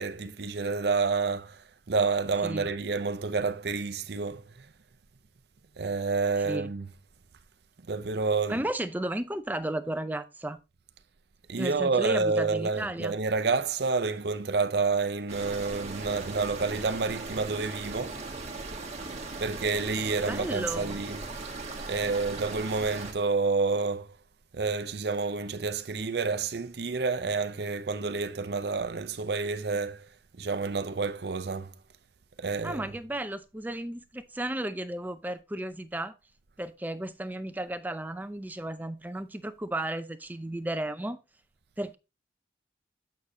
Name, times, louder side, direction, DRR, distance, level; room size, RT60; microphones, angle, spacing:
voice 1, 0.0-4.7 5.8-6.9 7.9-8.6 11.5-18.2 19.4-21.2 21.9-24.1 24.5-31.7 32.4-32.9, right 4 dB, 60° right, 0.6 m, -29 dB
voice 2, 8.5-10.6 11.6-13.2 20.2-21.0 32.6-36.1 36.6-41.2 41.8-42.0, right 1 dB, 10° right, 0.5 m, -34 dB
sound 1, 15.3-23.1, right 3 dB, 35° right, 1.4 m, -39 dB
8.5 x 6.3 x 2.8 m
head